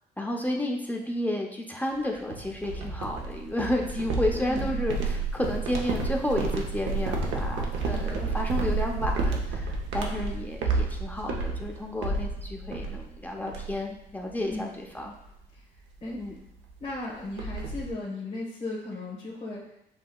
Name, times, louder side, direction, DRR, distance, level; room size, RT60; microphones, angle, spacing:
voice 1, 0.2-15.1 16.2-16.4, left 1 dB, 10° left, 0 dB, 0.7 m, -31 dB
sound 1, 2.3-13.2 13.5-13.9 14.3-14.5 14.9-15.2 16.2-16.3 16.6-16.7 16.9-17.9, right 3 dB, 85° right, 0.7 m, -30 dB
voice 2, 4.3-4.8 7.9-8.3 14.5-14.7 16.0-16.2 16.8-19.7, left 2 dB, 30° left, -6 dB, 1.3 m, -36 dB
7.6 x 2.8 x 2.3 m, 0.78 s
cardioid pair, 90°, 19 cm